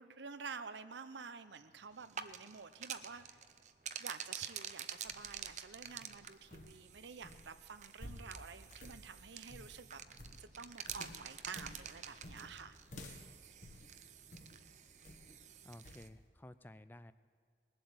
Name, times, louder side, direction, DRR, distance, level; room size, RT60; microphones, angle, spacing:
voice 1, 0.0-3.4 4.0-10.0 10.4-12.8, right 5 dB, 80° right, 12 dB, 0.7 m, -50 dB
sound 1, 1.9-16.1, right 8 dB, 40° right, 0.5 m, -49 dB
sound 2, 4.9-14.6 15.0-15.4 15.8-16.1, left 1 dB, 45° left, 1.4 m, -54 dB
voice 2, 15.6-17.1, left 1 dB, 10° left, 13 dB, 0.3 m, -54 dB
20.5 x 7.8 x 7.9 m, 2.1 s
head